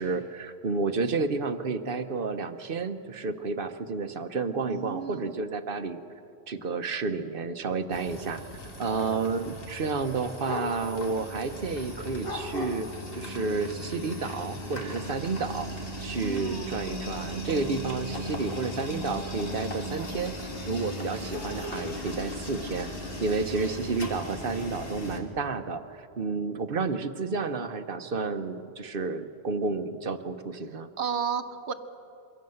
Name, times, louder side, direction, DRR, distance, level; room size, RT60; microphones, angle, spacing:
voice 1, 0.0-6.0 6.5-8.4 8.8-12.9 13.1-15.7 16.0-22.9 23.2-30.9, right 4 dB, 55° right, 9 dB, 1.0 m, -31 dB
voice 2, 4.6-5.3 16.2-16.7 31.0-31.7, right 6 dB, 80° right, 9 dB, 1.2 m, -32 dB
sound 1, 7.9-25.2, left 1 dB, 60° left, 2.4 m, -37 dB
23.5 x 16.5 x 7.8 m, 2.6 s
omnidirectional pair, 1.1 m